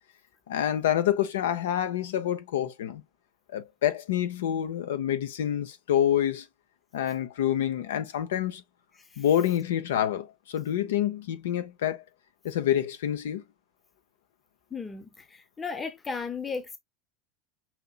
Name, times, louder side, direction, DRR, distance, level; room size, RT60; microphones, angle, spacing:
voice 1, 0.5-3.0 3.5-6.5 6.9-8.6 9.2-12.0 12.4-13.4, left 10 dB, 75° left, 0.6 m, -27 dB
voice 2, 14.7-16.8, left 5 dB, 20° left, 0.8 m, -35 dB
5.8 x 2.8 x 2.3 m
hypercardioid pair, 85°, 0 cm